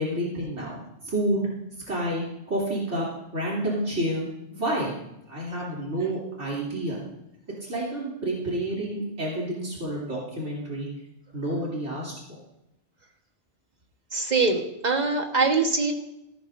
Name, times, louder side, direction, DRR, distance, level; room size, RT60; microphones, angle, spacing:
voice 1, 0.0-1.5 1.9-3.1 3.3-4.9 5.3-7.0 7.6-10.9 11.3-12.1, right 1 dB, 80° right, -5 dB, 3.4 m, -29 dB
voice 2, 14.1-15.9, right 4 dB, 40° right, 3 dB, 1.4 m, -23 dB
14.5 x 13.5 x 2.6 m, 0.86 s
omnidirectional pair, 1.2 m